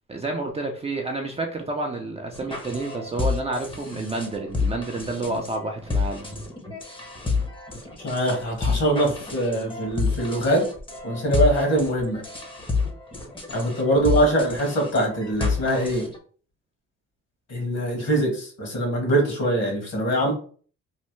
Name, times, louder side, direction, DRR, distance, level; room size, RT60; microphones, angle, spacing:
voice 1, 0.1-6.4, right 2 dB, 20° right, 1 dB, 0.5 m, -30 dB
sound 1, 2.3-16.2, left 4 dB, 15° left, 0.8 m, -29 dB
voice 2, 8.0-10.7 11.0-12.2 13.5-16.1 17.5-20.3, right 1 dB, 60° left, 1 dB, 1.5 m, -23 dB
3.2 x 2.1 x 3.0 m, 0.43 s
cardioid pair, 90°, 30 cm